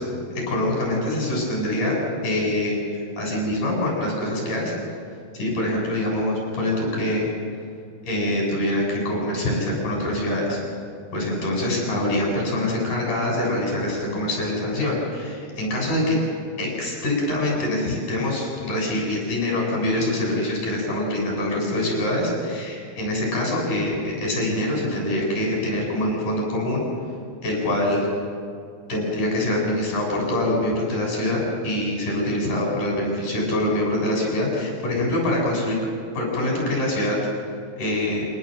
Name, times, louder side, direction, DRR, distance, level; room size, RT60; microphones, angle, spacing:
voice 1, 0.3-2.0 2.2-2.8 3.2-4.8 5.3-7.3 8.0-10.6 11.1-16.2 16.6-26.8 27.4-28.1 28.9-35.8 36.1-37.2 37.8-38.3, left 1 dB, 60° left, -2 dB, 9.3 m, -24 dB
27.0 x 18.5 x 7.9 m, 2.4 s
omnidirectional pair, 4.1 m